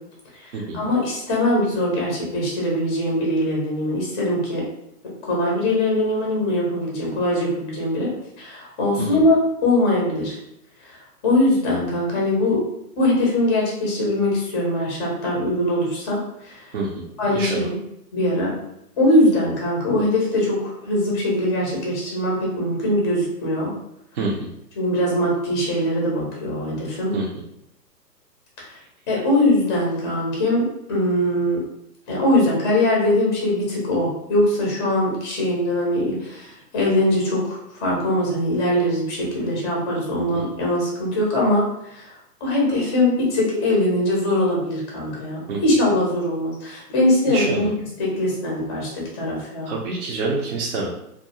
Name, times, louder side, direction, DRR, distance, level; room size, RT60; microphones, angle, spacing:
voice 1, 0.4-4.6 5.2-8.1 8.4-9.4 9.6-10.4 10.8-11.0 11.2-12.6 13.0-16.7 17.2-17.8 18.1-18.5 19.0-23.7 24.8-27.1 28.6-28.7 29.1-31.6 32.1-42.1 42.4-47.7 48.0-49.7, left 1 dB, 20° left, -3 dB, 0.5 m, -22 dB
voice 2, 17.3-17.7 24.1-24.5 27.1-27.3 40.3-40.4 45.5-45.6 47.3-47.7 49.7-50.9, right 3 dB, 45° right, -3 dB, 0.5 m, -26 dB
2.4 x 2.2 x 2.8 m, 0.81 s
hypercardioid pair, 130°, 48 cm